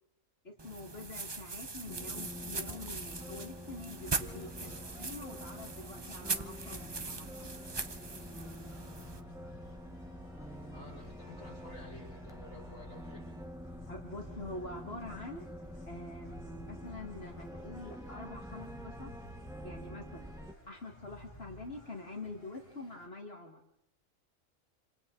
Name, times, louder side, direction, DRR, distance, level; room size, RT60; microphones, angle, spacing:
voice 1, 0.4-7.5 13.9-15.5 15.9-19.1 19.6-20.3 20.7-23.8, left 2 dB, 50° left, 2 dB, 2.1 m, -46 dB
sound 1, 0.6-9.2, right 3 dB, 25° right, 0.7 m, -41 dB
sound 2, 1.9-20.5, equal, 5° right, 1.0 m, -47 dB
sound 3, 4.0-23.1, left 1 dB, 25° left, 3.2 m, -56 dB
voice 2, 10.7-13.3, left 1 dB, 70° left, -4 dB, 6.4 m, -51 dB
27.5 x 27.5 x 3.8 m, 0.76 s
omnidirectional pair, 1.3 m